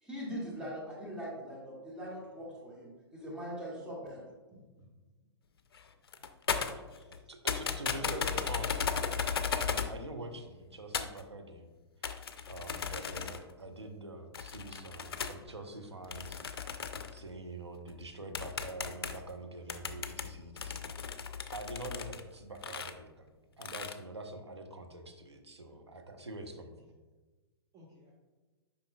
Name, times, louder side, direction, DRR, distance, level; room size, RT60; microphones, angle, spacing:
voice 1, 0.0-4.3, equal, 5° right, -5 dB, 1.9 m, -41 dB
voice 2, 4.5-4.9 6.8-7.2 8.0-8.3 27.7-28.1, right 5 dB, 25° right, -5 dB, 1.2 m, -50 dB
sound 1, 5.7-5.8 6.1-7.2 7.5-10.0 10.9-11.2 12.0-13.5 14.3-15.4 16.1-17.2 17.9-18.0 18.4-19.3 19.7-22.2 22.6-22.9 23.6-24.0, left 6 dB, 60° left, 0.5 m, -36 dB
voice 3, 7.3-11.7 12.5-16.4 17.1-20.9 21.2-26.7, right 2 dB, 85° right, 4 dB, 0.8 m, -45 dB
8.5 x 5.3 x 2.3 m, 1.3 s
figure-of-eight pair, 110°, 14 cm